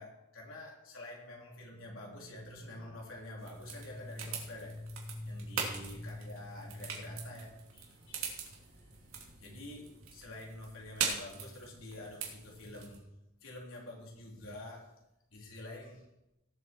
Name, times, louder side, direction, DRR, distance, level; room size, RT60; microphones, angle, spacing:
voice 1, 0.0-13.1 13.4-14.9 15.3-16.0, left 1 dB, 80° left, -2 dB, 3.6 m, -46 dB
sound 1, 3.4-13.0, right 6 dB, 85° right, 2.9 m, -42 dB
18.5 x 7.8 x 4.5 m, 0.88 s
head